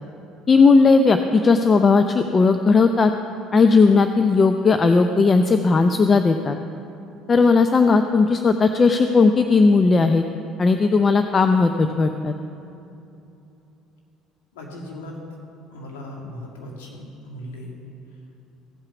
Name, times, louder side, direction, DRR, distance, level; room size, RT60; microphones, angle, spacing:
voice 1, 0.5-3.1 3.5-6.6 7.3-10.2 10.6-12.3, left 4 dB, 35° left, 7 dB, 0.5 m, -16 dB
voice 2, 14.5-15.2 15.7-17.8, left 1 dB, 90° left, -1 dB, 1.9 m, -37 dB
16.0 x 5.7 x 7.0 m, 2.8 s
hypercardioid pair, 70°, 0 cm